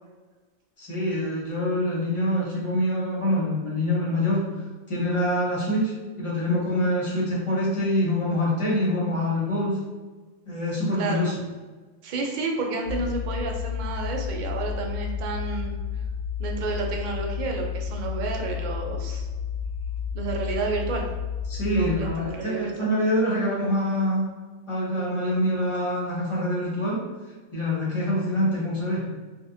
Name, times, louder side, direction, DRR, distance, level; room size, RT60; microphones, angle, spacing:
voice 1, 0.8-4.4 4.9-5.9 6.2-9.8 10.5-11.3 21.5-24.3 24.7-27.0 27.5-29.0, left 1 dB, 25° left, -6 dB, 0.9 m, -25 dB
voice 2, 12.0-15.8 16.4-19.3 20.1-21.1 21.7-22.9, right 4 dB, 65° right, 1 dB, 0.4 m, -31 dB
sound 1, 12.9-22.1, left 7 dB, 75° left, 1.0 m, -31 dB
3.5 x 2.5 x 2.6 m, 1.3 s
omnidirectional pair, 1.4 m